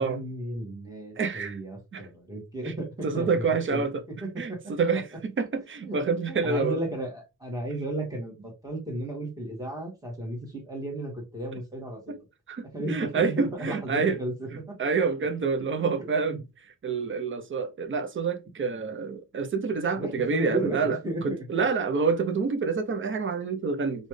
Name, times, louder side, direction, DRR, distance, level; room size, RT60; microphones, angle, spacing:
voice 1, 0.0-3.8 4.2-4.6 5.8-6.0 6.3-12.2 12.7-14.8 16.3-16.4 19.9-21.4, right 1 dB, 10° right, 1.6 m, -34 dB
voice 2, 1.2-1.6 1.9-2.0 2.6-2.7 3.0-4.0 4.4-6.8 12.1-12.2 12.5-14.2 14.5-16.4 16.8-21.0 21.2-24.1, right 5 dB, 40° right, 0.6 m, -27 dB
4.1 x 2.4 x 3.1 m
wide cardioid pair, 140°, 30 cm